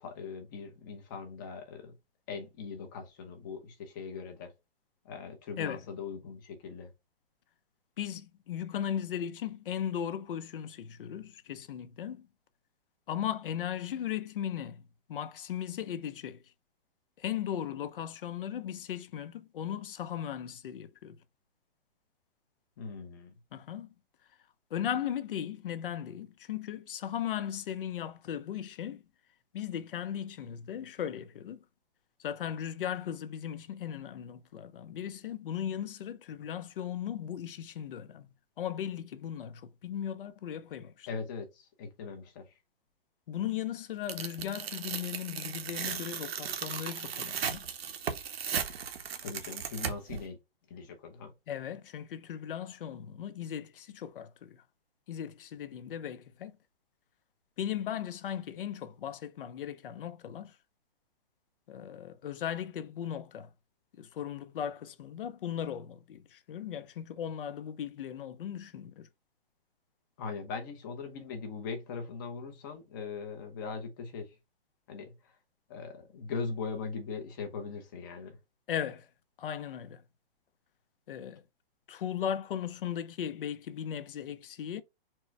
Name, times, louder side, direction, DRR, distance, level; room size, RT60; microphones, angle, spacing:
voice 1, 0.0-1.9 2.3-4.5 5.0-6.9 22.8-23.3 41.1-42.5 49.2-50.4 50.7-51.3 70.2-74.3 74.9-75.3 75.7-78.4, left 5 dB, 20° left, 0.6 m, -40 dB
voice 2, 8.0-12.3 13.1-14.8 15.1-16.4 17.2-21.2 23.5-23.9 24.7-29.0 29.5-31.6 32.2-38.3 38.6-41.1 43.3-47.7 51.5-54.6 55.1-56.5 57.6-60.6 61.7-63.5 64.0-69.1 78.7-79.1 79.4-80.0 81.1-81.4 81.9-84.8, left 9 dB, 60° left, 0.6 m, -37 dB
Tearing, 44.1-50.2, right 7 dB, 80° right, 0.9 m, -36 dB
4.4 x 2.1 x 4.5 m
hypercardioid pair, 170°, 30 cm